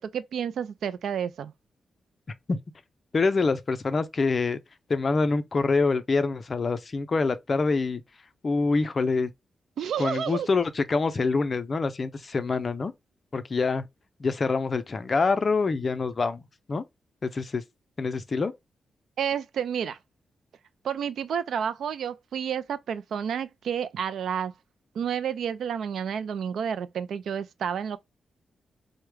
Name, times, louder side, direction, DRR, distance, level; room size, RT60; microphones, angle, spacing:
voice 1, 0.0-1.5 9.8-10.5 19.2-20.0 20.8-24.5 25.0-28.0, right 8 dB, 85° right, 0.3 m, -30 dB
voice 2, 3.1-4.6 4.9-8.0 8.4-9.3 10.0-12.9 13.3-13.8 14.2-16.4 16.7-16.8 17.2-17.6 18.0-18.5, left 4 dB, 35° left, 0.4 m, -25 dB
4.6 x 2.1 x 3.1 m
wide cardioid pair, 160°, 0 cm